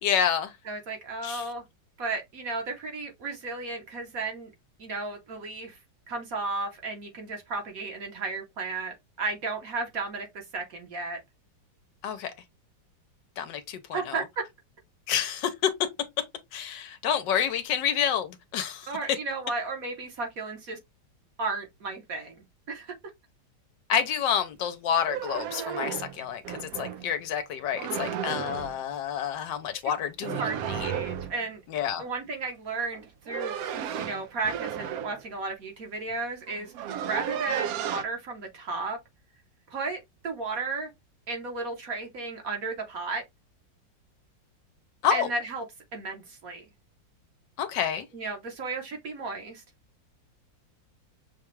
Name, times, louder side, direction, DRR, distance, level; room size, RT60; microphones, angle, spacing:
voice 1, 0.0-0.5 1.2-1.4 12.0-12.3 13.4-14.2 15.1-15.7 16.5-18.9 23.9-30.4 30.7-30.9 31.7-32.0 45.0-45.3 47.6-48.1, left 8 dB, 75° left, 1.3 m, -28 dB
voice 2, 0.6-1.6 2.0-4.5 4.8-5.8 6.1-11.2 13.9-14.2 18.9-20.8 21.4-22.9 30.4-31.6 32.0-33.7 34.0-39.0 39.7-40.9 41.3-43.2 45.1-45.7 45.9-46.6 48.1-49.6, right 3 dB, 55° right, 1.3 m, -34 dB
sound 1, 24.9-27.1 27.7-28.8 30.2-31.4 32.9-35.2 36.1-36.2 36.5-38.0, right 9 dB, 75° right, 0.8 m, -33 dB
5.9 x 2.3 x 3.0 m
omnidirectional pair, 2.0 m